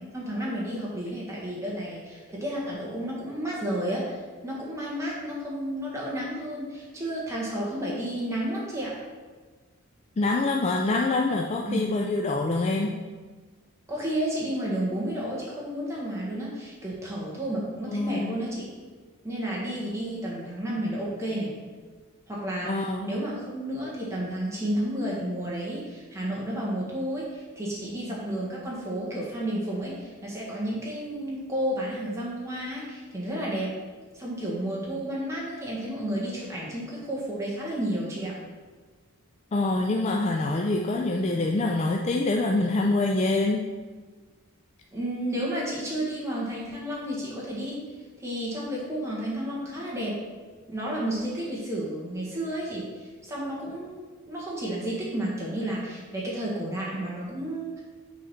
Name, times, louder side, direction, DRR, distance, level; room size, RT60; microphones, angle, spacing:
voice 1, 0.1-8.9 11.6-11.8 13.9-18.7 19.2-21.5 22.3-33.7 34.1-38.3 44.9-47.8 48.2-50.2 50.7-57.8, right 1 dB, 15° right, -5 dB, 1.6 m, -31 dB
voice 2, 10.2-13.0 17.9-18.5 22.6-23.2 39.5-43.7, left 2 dB, 30° left, 1 dB, 0.3 m, -25 dB
6.4 x 3.9 x 5.7 m, 1.4 s
head